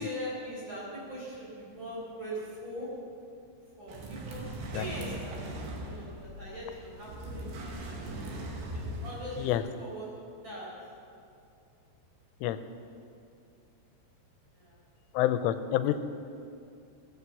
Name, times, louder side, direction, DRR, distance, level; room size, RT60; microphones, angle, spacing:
voice 1, 0.0-2.9 3.8-4.5 4.7-5.4 5.8-8.1 8.7-10.1 10.4-10.7 12.8-12.9 14.5-14.8 15.8-16.0, equal, 25° right, -5 dB, 4.5 m, -41 dB
sound 1, 3.9-9.6, right 1 dB, 65° right, 3.5 m, -40 dB
voice 2, 15.1-16.0, left 12 dB, 90° left, 11 dB, 3.2 m, -27 dB
16.0 x 9.8 x 7.1 m, 2.5 s
omnidirectional pair, 5.6 m